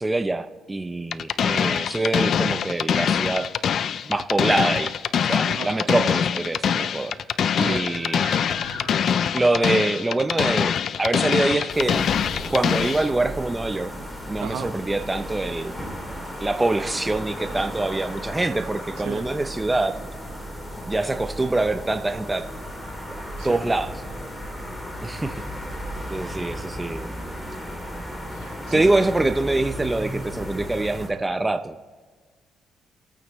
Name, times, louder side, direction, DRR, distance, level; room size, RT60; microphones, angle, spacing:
voice 1, 0.0-3.5 4.0-4.9 5.3-7.2 7.6-8.3 9.3-12.1 12.5-13.9 14.3-15.8 16.4-20.0 20.9-22.4 23.4-23.9 25.0-25.4 26.1-27.1 28.7-31.8, right 2 dB, 15° right, 8 dB, 0.6 m, -24 dB
sound 1, 1.1-13.1, left 8 dB, 60° left, 0.3 m, -24 dB
sound 2, 7.0-11.1, left 3 dB, 90° left, 1.4 m, -41 dB
sound 3, 11.7-31.1, equal, 15° left, 2.7 m, -35 dB
voice 2, 14.4-14.7 19.0-19.2 23.4-23.6 28.3-28.9, right 9 dB, 80° right, 7 dB, 1.2 m, -34 dB
22.0 x 8.8 x 3.1 m, 1.5 s
cardioid pair, 90°, 0 cm